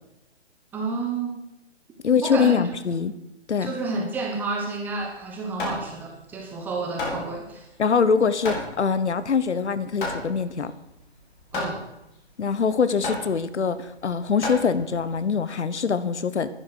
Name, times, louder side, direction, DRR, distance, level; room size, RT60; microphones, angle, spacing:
voice 1, 0.7-1.4 2.2-2.6 3.6-7.7 11.5-11.8, right 3 dB, 5° right, 1 dB, 0.8 m, -30 dB
voice 2, 2.0-3.1 3.5-3.7 7.8-10.7 12.4-16.5, left 6 dB, 85° left, 14 dB, 1.2 m, -23 dB
Hammer, 5.0-15.2, left 2 dB, 50° left, 4.6 m, -34 dB
11.0 x 9.5 x 6.4 m, 0.91 s
hypercardioid pair, 160°, 34 cm